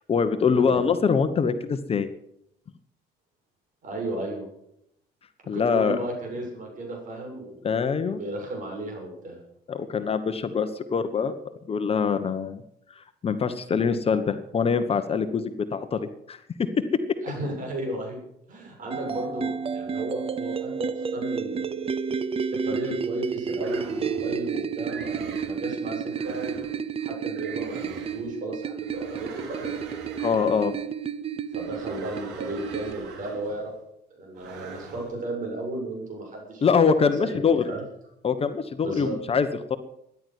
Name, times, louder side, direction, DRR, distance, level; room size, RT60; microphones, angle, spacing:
voice 1, 0.1-2.1 5.5-6.0 7.6-8.2 9.7-11.4 11.7-12.6 13.0-16.4 30.2-30.7 36.6-37.6 38.2-39.8, left 6 dB, 35° left, 10 dB, 1.1 m, -24 dB
voice 2, 3.8-4.5 5.5-7.6 8.1-9.4 17.2-18.2 18.5-21.8 22.6-29.7 31.5-33.7 34.2-36.9 37.2-37.8 38.8-39.2, right 1 dB, 50° right, 1 dB, 7.3 m, -34 dB
sound 1, 18.9-32.9, right 6 dB, 35° right, 0.8 m, -31 dB
sound 2, 23.6-24.4 24.9-25.6 26.1-26.8 27.3-28.3 28.8-30.8 31.5-33.7 34.3-35.1, right 5 dB, 85° right, 3.9 m, -42 dB
13.5 x 11.0 x 8.2 m, 0.78 s
cardioid pair, 110°, 17 cm